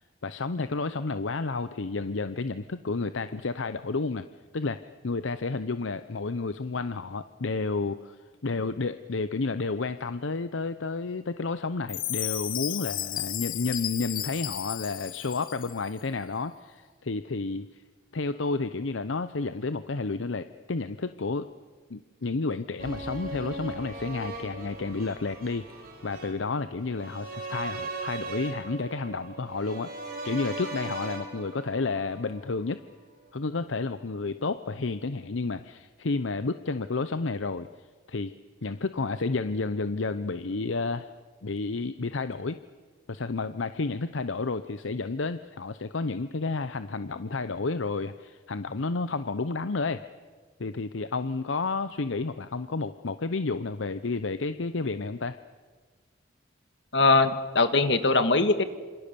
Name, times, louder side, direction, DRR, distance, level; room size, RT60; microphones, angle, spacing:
voice 1, 0.2-4.3 4.5-4.8 5.0-8.2 8.4-17.8 18.1-21.5 21.9-25.6 26.0-29.9 30.2-32.8 33.3-37.7 38.1-38.3 38.6-41.1 41.4-42.6 43.1-50.0 50.6-55.4, left 3 dB, 85° left, 12 dB, 0.8 m, -31 dB
Chime, 11.9-15.9, left 14 dB, 45° left, 0.7 m, -34 dB
sound 1, 22.8-32.9 33.2-33.3, right 2 dB, 50° right, 5.4 m, -39 dB
voice 2, 56.9-58.6, left 3 dB, 65° left, 10 dB, 1.8 m, -21 dB
27.5 x 27.0 x 6.9 m, 1.4 s
head